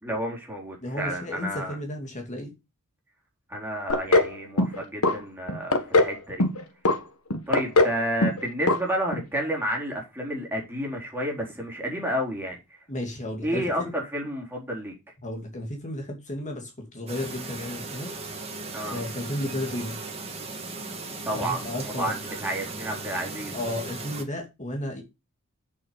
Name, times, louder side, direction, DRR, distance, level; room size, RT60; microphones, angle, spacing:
voice 1, 0.0-1.8 3.5-6.5 7.5-12.6 13.4-14.9 18.7-19.0 21.2-21.7 22.0-23.6, equal, 10° right, 3.9 m, -30 dB
voice 2, 0.8-2.5 12.9-13.9 15.2-18.1 18.9-20.0 21.3-22.1 23.5-25.0, left 1 dB, 35° left, 2.4 m, -33 dB
sound 1, 3.9-4.3 4.6-5.1 5.5-6.1 6.4-7.0 7.3-8.0 8.2-8.4 8.7-8.8 9.1-9.2, left 2 dB, 85° left, 1.5 m, -20 dB
Chirp tweet, 17.1-24.2, right 3 dB, 30° right, 2.3 m, -37 dB
8.0 x 6.5 x 5.2 m
head